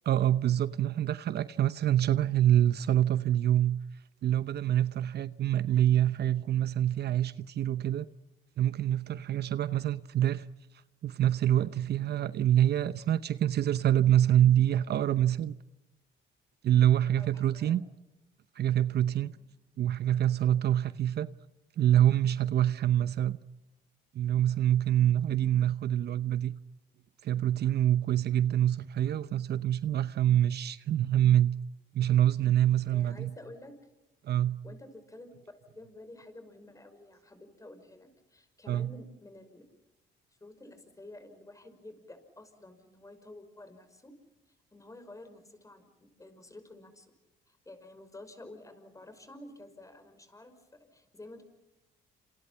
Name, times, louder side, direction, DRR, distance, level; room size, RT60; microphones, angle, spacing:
voice 1, 0.1-3.8 4.2-8.1 8.6-10.5 11.0-15.5 16.6-17.8 18.6-19.3 19.8-21.3 21.8-23.4 24.1-26.5 27.2-31.6 31.9-33.3 34.2-34.6 38.7-38.9, right 11 dB, 60° right, 0.8 m, -26 dB
voice 2, 17.2-17.8 19.2-19.4 32.9-33.7 34.6-39.6 40.4-44.1 44.7-47.1 47.5-51.4, left 2 dB, 15° left, 5.6 m, -50 dB
28.5 x 27.5 x 5.7 m
cardioid pair, 95°, 19 cm